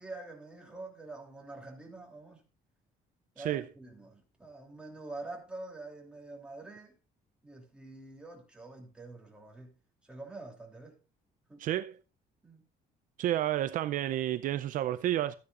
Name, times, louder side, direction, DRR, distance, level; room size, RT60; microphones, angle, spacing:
voice 1, 0.0-2.4 3.3-6.9 7.4-9.8 10.0-11.0 11.5-11.6 12.4-12.6, right 2 dB, 5° right, 2.9 m, -46 dB
voice 2, 11.6-12.0 13.2-15.3, right 12 dB, 55° right, 0.5 m, -30 dB
13.5 x 9.7 x 2.4 m
cardioid pair, 165°, 16 cm